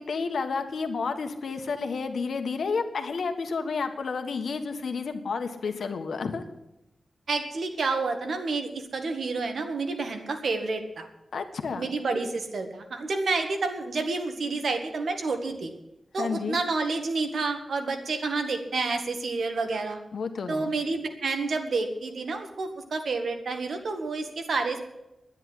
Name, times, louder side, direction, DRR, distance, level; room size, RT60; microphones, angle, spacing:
voice 1, 0.0-6.4 11.3-11.9 16.2-16.6 20.1-20.7, left 5 dB, 80° left, 6 dB, 1.5 m, -31 dB
voice 2, 7.3-11.1 11.8-15.7 16.1-20.0 20.5-24.8, right 3 dB, 75° right, 5 dB, 1.9 m, -29 dB
11.0 x 9.9 x 9.6 m, 0.92 s
wide cardioid pair, 145°, 0 cm